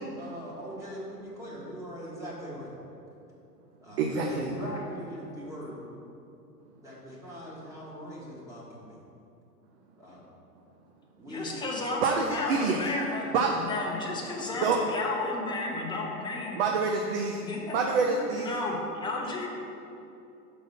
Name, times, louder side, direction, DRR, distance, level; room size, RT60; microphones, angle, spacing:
voice 1, 0.1-2.7 3.8-5.8 6.8-9.0 10.0-10.3 11.2-11.7, equal, 5° right, -6 dB, 1.4 m, -40 dB
voice 2, 4.0-4.5 12.0-12.8 13.3-13.5 14.6-14.8 16.5-17.4 17.7-18.5, right 5 dB, 40° right, 2 dB, 0.6 m, -26 dB
voice 3, 11.3-13.3 13.6-16.6 17.4-19.5, left 2 dB, 10° left, -1 dB, 0.8 m, -33 dB
6.0 x 5.1 x 5.7 m, 2.8 s
figure-of-eight pair, 100°, 50 cm